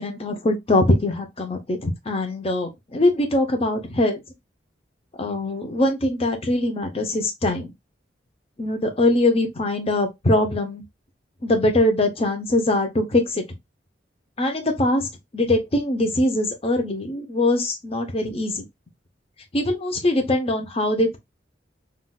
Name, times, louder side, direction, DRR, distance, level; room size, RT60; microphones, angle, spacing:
voice 1, 0.0-4.2 5.2-7.7 8.6-10.8 11.4-13.4 14.4-15.1 15.3-18.6 19.5-21.2, left 1 dB, 30° left, 0.6 m, -22 dB
3.7 x 2.3 x 2.2 m
head